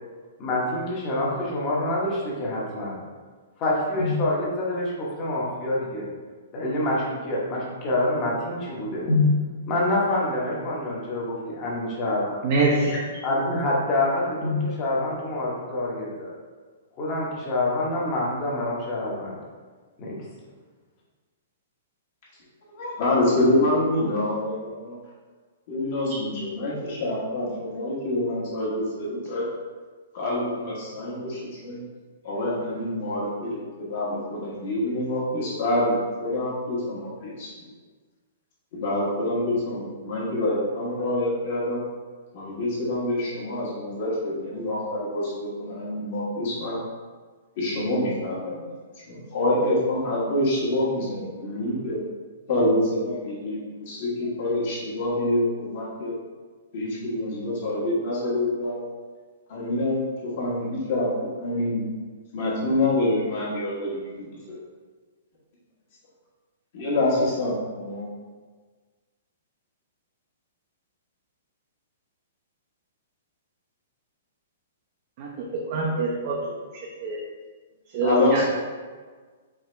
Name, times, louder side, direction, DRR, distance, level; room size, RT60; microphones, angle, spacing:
voice 1, 0.4-3.0 3.6-6.1 6.5-9.2 9.7-12.5 12.9-16.3 17.0-19.4 20.0-20.2, left 2 dB, 25° left, -4 dB, 1.0 m, -26 dB
voice 2, 12.4-13.0 75.2-76.4 77.0-77.2 77.9-78.4, right 2 dB, 40° right, -3 dB, 0.6 m, -24 dB
voice 3, 22.8-25.0 25.7-29.4 30.1-31.8 32.2-37.5 38.7-41.8 42.3-46.8 47.6-48.6 49.1-52.0 52.5-56.1 56.7-58.8 59.5-61.8 62.3-64.6 66.7-68.1 78.0-78.5, left 1 dB, 50° left, -8 dB, 1.3 m, -26 dB
4.7 x 2.9 x 3.2 m, 1.5 s
hypercardioid pair, 165°, 0 cm